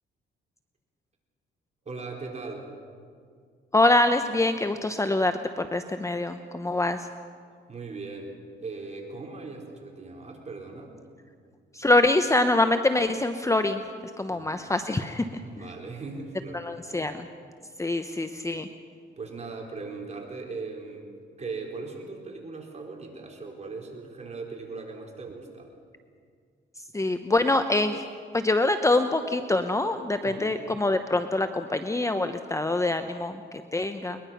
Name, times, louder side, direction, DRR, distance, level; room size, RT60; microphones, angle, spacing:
voice 1, 1.8-2.7 7.7-10.9 14.3-14.5 15.4-16.7 19.2-21.1 21.4-25.7 30.2-30.6, right 4 dB, 35° right, 0 dB, 4.4 m, -39 dB
voice 2, 3.7-7.1 11.7-13.8 14.2-15.6 16.5-17.3 17.8-18.7 26.9-28.0 28.3-34.2, left 2 dB, 15° left, 8 dB, 0.9 m, -25 dB
22.0 x 21.0 x 5.8 m, 2.1 s
cardioid pair, 90°, 20 cm